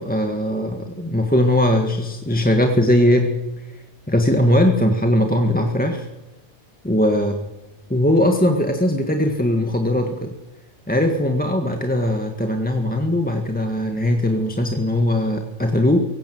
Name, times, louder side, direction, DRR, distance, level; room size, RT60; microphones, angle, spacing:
voice 1, 0.0-3.3 4.1-6.1 6.8-7.5 7.9-10.3 10.9-16.0, left 1 dB, 5° left, 3 dB, 1.6 m, -19 dB
23.5 x 17.5 x 7.8 m, 1.1 s
omnidirectional pair, 1.5 m